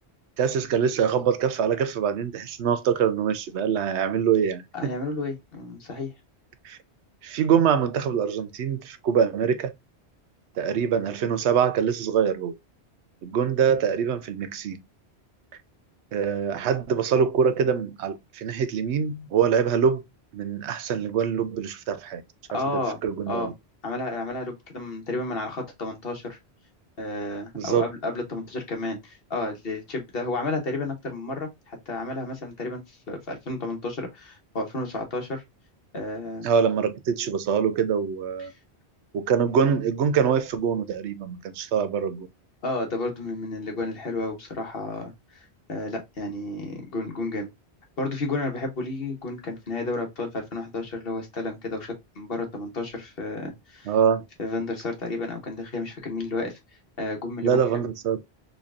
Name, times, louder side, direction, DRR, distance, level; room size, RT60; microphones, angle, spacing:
voice 1, 0.4-4.9 6.6-6.8 7.2-9.7 10.6-12.5 13.2-14.8 16.1-20.0 20.3-22.2 22.5-23.5 27.5-27.9 36.4-38.5 39.1-42.3 53.9-54.2 57.4-58.2, right 7 dB, 85° right, 0.9 m, -24 dB
voice 2, 4.7-6.1 22.5-23.0 23.3-23.5 23.8-26.4 27.0-32.8 33.1-35.4 35.9-36.5 42.6-47.5 48.0-53.9 54.4-56.6 57.0-57.9, left 2 dB, 60° left, 1.4 m, -31 dB
4.0 x 3.1 x 2.4 m
omnidirectional pair, 1.1 m